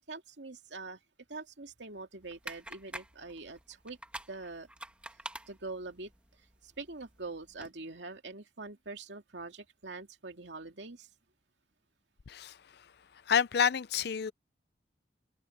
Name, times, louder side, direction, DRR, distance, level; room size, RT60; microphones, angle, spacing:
voice 1, 0.1-1.0 1.3-4.0 4.3-4.7 5.5-6.1 6.6-11.1, right 3 dB, 70° right, 2.5 m, -44 dB
sound 1, 2.2-7.7, right 1 dB, 5° right, 1.8 m, -48 dB
voice 2, 12.3-12.6 13.3-14.3, left 7 dB, 60° left, 0.5 m, -28 dB
open air
head